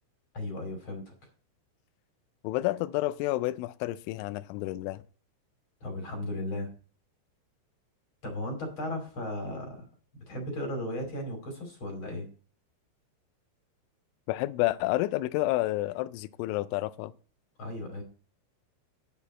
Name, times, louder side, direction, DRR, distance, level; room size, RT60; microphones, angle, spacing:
voice 1, 0.3-1.1 5.8-6.7 8.2-9.8 10.1-12.3 17.6-18.0, left 1 dB, 35° left, 2.3 m, -35 dB
voice 2, 2.4-5.0 14.3-17.1, left 17 dB, 85° left, 2.8 m, -30 dB
9.6 x 8.5 x 4.2 m
omnidirectional pair, 6.0 m